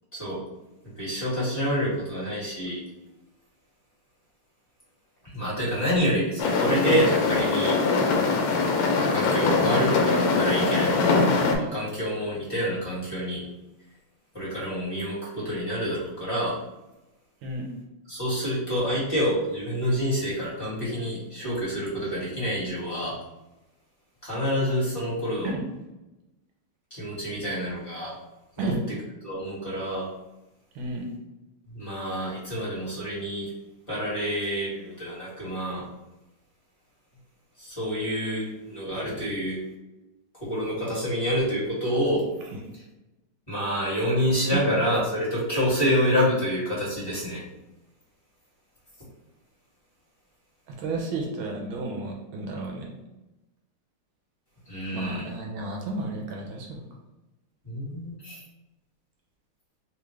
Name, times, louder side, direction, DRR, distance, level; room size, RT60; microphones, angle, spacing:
voice 1, 1.0-2.8 5.3-7.8 9.0-11.3 11.6-13.4 14.3-16.6 18.1-23.1 24.2-25.5 26.9-28.2 28.6-28.7 29.2-30.1 31.7-33.5 33.9-35.9 37.6-39.6 40.5-42.2 43.5-47.4 54.7-55.2 57.6-58.4, equal, 15° left, -8 dB, 1.3 m, -27 dB
sound 1, 6.4-11.6, left 4 dB, 85° left, 1.5 m, -22 dB
voice 2, 30.7-31.1 38.9-39.2 42.4-42.6 44.5-44.6 50.7-52.9 54.9-56.8, right 2 dB, 80° right, 0 dB, 1.5 m, -32 dB
3.6 x 2.4 x 3.2 m, 1.0 s
omnidirectional pair, 2.3 m